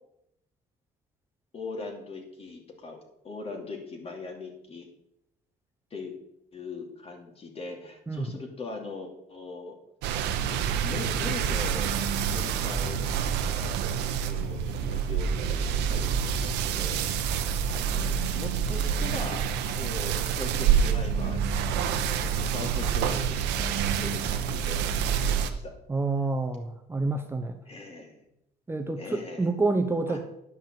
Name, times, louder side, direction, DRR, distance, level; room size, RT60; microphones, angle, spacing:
voice 1, 1.5-3.0 3.2-4.9 5.9-6.1 6.5-9.8 10.8-13.8 14.3-17.3 17.7-19.5 19.7-25.7 27.7-28.2 29.0-29.5 30.1-30.2, left 3 dB, 35° left, 2 dB, 2.8 m, -40 dB
sound 1, 10.0-25.5, right 7 dB, 90° right, 1.0 m, -27 dB
voice 2, 25.9-27.6 28.7-30.2, right 3 dB, 15° right, 4 dB, 0.8 m, -28 dB
10.5 x 5.6 x 7.6 m, 0.82 s
cardioid pair, 110°, 17 cm